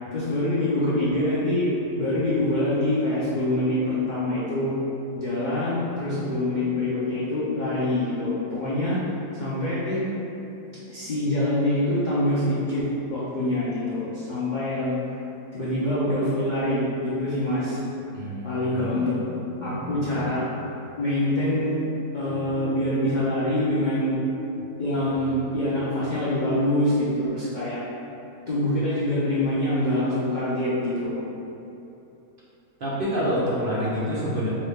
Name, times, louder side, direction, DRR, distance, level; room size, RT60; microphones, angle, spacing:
voice 1, 0.1-1.7 2.0-4.7 5.1-9.0 9.3-10.0 10.9-12.8 13.1-15.0 15.5-17.8 18.4-20.5 21.0-21.8 22.1-24.2 24.8-27.8 28.5-31.1, left 1 dB, 75° left, -10 dB, 0.4 m, -25 dB
voice 2, 18.1-19.0 32.8-34.5, equal, 60° right, -8 dB, 0.5 m, -27 dB
3.7 x 2.9 x 3.4 m, 2.9 s
omnidirectional pair, 1.7 m